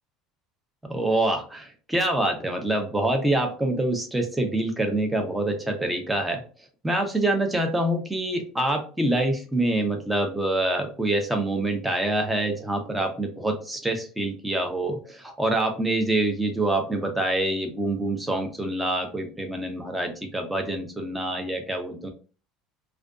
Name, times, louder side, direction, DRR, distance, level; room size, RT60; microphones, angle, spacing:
voice 1, 0.8-6.4 6.8-22.1, right 1 dB, 5° right, 4 dB, 0.5 m, -26 dB
2.5 x 2.2 x 2.3 m, 0.36 s
cardioid pair, 160°, 0 cm